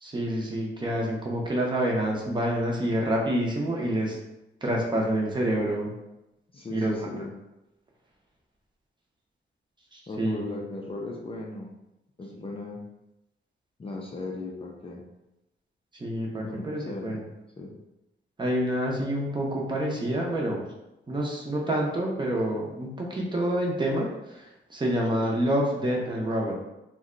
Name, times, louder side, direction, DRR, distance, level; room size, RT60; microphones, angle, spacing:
voice 1, 0.0-4.2 4.6-5.9 6.7-7.1 9.9-10.4 15.9-17.2 18.4-20.6 21.1-26.6, right 1 dB, 25° right, -2 dB, 0.7 m, -27 dB
voice 2, 6.5-7.3 10.1-11.7 12.2-12.8 13.8-15.0 16.4-17.2 17.6-17.7, left 2 dB, 30° left, -1 dB, 0.4 m, -37 dB
2.7 x 2.2 x 3.7 m, 0.92 s
wide cardioid pair, 120°, 19 cm